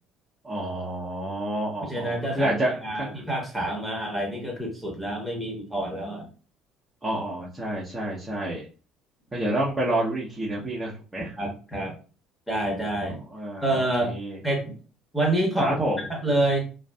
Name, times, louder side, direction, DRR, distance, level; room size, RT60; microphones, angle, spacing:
voice 1, 0.4-3.2 7.0-8.6 9.3-11.4 13.1-14.4 15.6-16.0, right 1 dB, 20° right, -6 dB, 0.8 m, -29 dB
voice 2, 1.9-6.3 11.4-11.9 12.5-13.2 13.6-14.1 14.4-14.7 15.1-15.7 16.1-16.6, right 1 dB, 5° right, 0 dB, 1.2 m, -27 dB
2.5 x 2.4 x 2.3 m, 0.37 s
hypercardioid pair, 65°, 0 cm